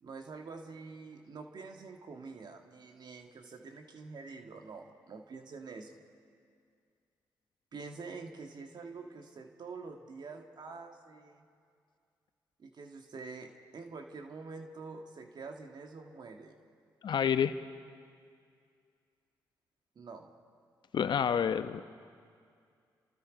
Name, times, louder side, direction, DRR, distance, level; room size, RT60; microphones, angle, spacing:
voice 1, 0.0-6.0 7.7-11.5 12.6-16.6 20.0-20.3, right 4 dB, 60° right, 4 dB, 1.8 m, -46 dB
voice 2, 17.0-17.5 20.9-21.8, left 8 dB, 65° left, 11 dB, 0.9 m, -28 dB
28.0 x 26.5 x 5.2 m, 2.3 s
supercardioid pair, 50°, 8 cm